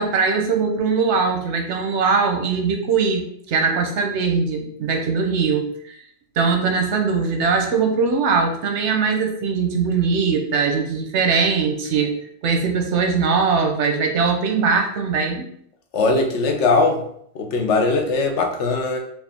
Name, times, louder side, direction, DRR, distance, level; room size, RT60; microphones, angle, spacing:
voice 1, 0.0-6.0 6.4-12.1 12.4-15.5, right 5 dB, 85° right, 4 dB, 1.0 m, -21 dB
voice 2, 15.9-17.0 17.3-19.0, left 3 dB, 85° left, 4 dB, 1.0 m, -20 dB
4.4 x 2.4 x 3.4 m, 0.68 s
omnidirectional pair, 1.2 m